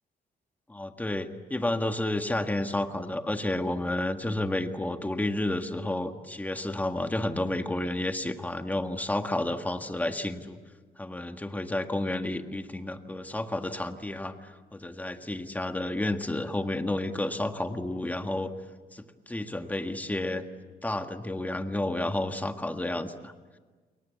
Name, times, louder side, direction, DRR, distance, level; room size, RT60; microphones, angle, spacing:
voice 1, 0.7-10.6 11.0-18.5 18.9-20.5 20.8-23.3, left 1 dB, 10° left, 6 dB, 1.7 m, -31 dB
29.5 x 22.5 x 8.4 m, 1.4 s
cardioid pair, 105°, 17 cm